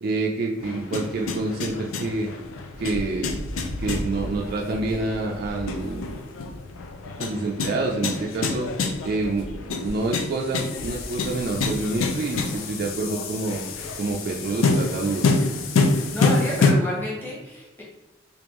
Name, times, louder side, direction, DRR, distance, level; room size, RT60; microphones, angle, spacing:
voice 1, 0.0-2.3 2.8-3.5 3.8-6.1 7.2-8.7 9.0-13.6 14.0-15.3, right 3 dB, 50° right, -2 dB, 0.4 m, -27 dB
sound 1, 0.6-16.7, left 3 dB, 85° left, 0.4 m, -27 dB
voice 2, 16.1-17.8, left 1 dB, 10° left, -6 dB, 1.0 m, -30 dB
3.3 x 2.4 x 3.1 m, 1.0 s
head